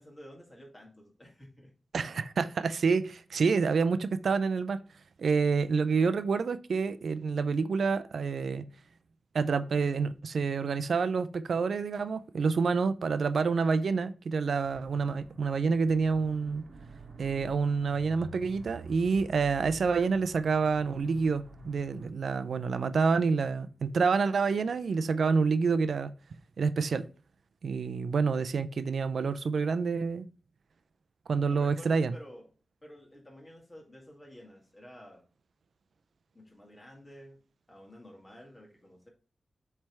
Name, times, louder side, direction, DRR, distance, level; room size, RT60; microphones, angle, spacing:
voice 1, 0.0-1.7 31.4-32.5 32.8-35.2 36.3-37.4 37.7-39.1, equal, 20° left, 2.2 m, -51 dB
voice 2, 1.9-4.8 5.2-8.7 9.3-16.6 17.2-26.1 26.6-27.1 27.6-30.3 31.3-32.2, right 5 dB, 90° right, 0.4 m, -28 dB
sound 1, 14.6-22.1, right 3 dB, 50° right, 1.3 m, -49 dB
7.4 x 3.4 x 4.6 m
wide cardioid pair, 115°, 0 cm